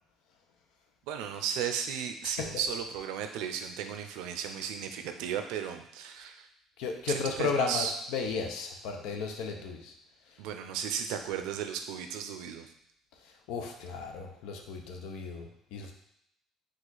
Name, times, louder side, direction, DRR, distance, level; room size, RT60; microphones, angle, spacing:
voice 1, 1.1-6.5 7.1-7.9 10.4-12.7, right 8 dB, 85° right, 7 dB, 0.5 m, -35 dB
voice 2, 6.8-9.9 13.2-15.9, left 5 dB, 80° left, 3 dB, 0.7 m, -34 dB
4.8 x 2.5 x 4.0 m, 0.75 s
cardioid pair, 140°, 0 cm